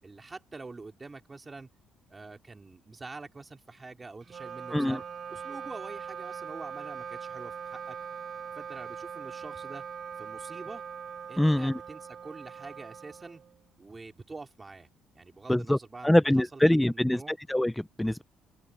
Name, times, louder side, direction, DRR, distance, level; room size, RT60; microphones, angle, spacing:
voice 1, 0.0-1.7 2.1-5.0 5.3-8.0 8.5-9.8 10.2-10.8 11.3-13.4 13.8-14.9 15.1-17.4, right 3 dB, 25° right, 4.2 m, -45 dB
Wind instrument woodwind instrument, 4.2-13.8, right 7 dB, 45° right, 3.5 m, -41 dB
voice 2, 4.7-5.0 11.4-11.8 15.5-15.8 16.0-18.2, left 1 dB, 5° left, 0.4 m, -24 dB
cardioid pair, 95°, 0 cm